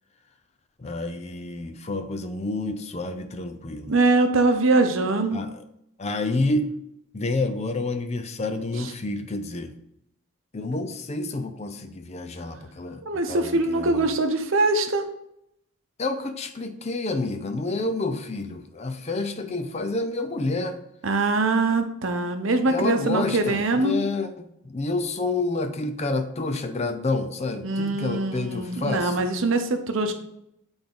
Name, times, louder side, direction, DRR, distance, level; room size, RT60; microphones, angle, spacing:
voice 1, 0.8-4.0 5.3-5.6 6.0-6.7 7.1-9.7 10.5-14.1 16.0-20.8 22.7-29.2, left 2 dB, 30° left, 8 dB, 0.5 m, -29 dB
voice 2, 3.9-5.4 13.0-15.1 21.0-23.9 27.6-30.1, right 2 dB, 70° right, 7 dB, 0.8 m, -23 dB
8.9 x 3.5 x 3.8 m, 0.77 s
head